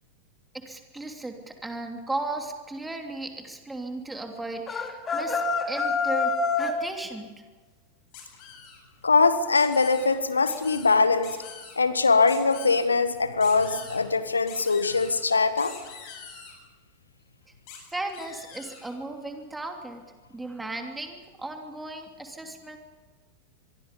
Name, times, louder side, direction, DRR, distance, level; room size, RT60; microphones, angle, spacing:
voice 1, 0.5-7.3 17.9-20.0 20.3-22.8, right 2 dB, 5° right, 4 dB, 3.0 m, -36 dB
sound 1, 4.7-6.8, left 4 dB, 20° left, 2.7 m, -26 dB
sound 2, 8.1-8.8 9.5-10.1 10.4-10.9 11.2-11.8 12.3-12.8 13.4-14.0 14.5-15.1 15.6-16.5 17.7-17.8 18.1-18.9, left 7 dB, 45° left, 7.9 m, -44 dB
voice 2, 9.0-11.4 11.8-15.7, left 4 dB, 75° left, 12 dB, 1.6 m, -22 dB
25.5 x 23.0 x 5.5 m, 1.4 s
figure-of-eight pair, 90°, 0 cm